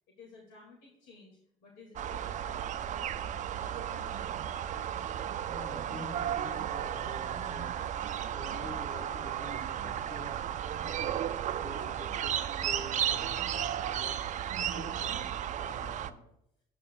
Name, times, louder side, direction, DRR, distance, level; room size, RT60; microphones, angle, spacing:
voice 1, 0.2-4.8, left 3 dB, 85° left, -1 dB, 2.0 m, -55 dB
sound 1, 2.0-16.1, right 10 dB, 45° right, 0.5 m, -34 dB
voice 2, 5.5-8.0 8.3-10.3 10.8-11.2 11.5-14.2 14.6-15.3 15.6-16.3, left 2 dB, 60° left, 0 dB, 3.6 m, -47 dB
12.0 x 8.6 x 2.2 m, 0.77 s
cardioid pair, 110°, 17 cm